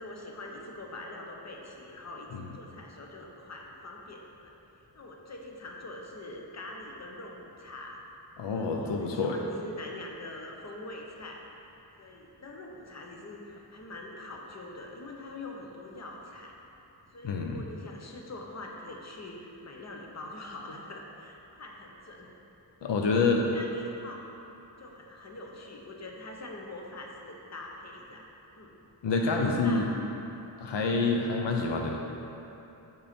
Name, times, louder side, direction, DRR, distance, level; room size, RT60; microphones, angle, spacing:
voice 1, 0.0-4.5 4.9-8.0 8.5-11.4 12.0-16.5 17.1-22.3 22.8-22.9 23.5-24.2 24.8-28.3 28.5-28.7 29.2-30.0, left 2 dB, 40° left, 0 dB, 0.9 m, -44 dB
voice 2, 8.4-9.4 17.2-17.6 22.8-23.5 29.0-29.9 30.6-32.1, left 3 dB, 80° left, 1 dB, 0.6 m, -27 dB
7.1 x 5.4 x 4.3 m, 3.0 s
wide cardioid pair, 115°, 42 cm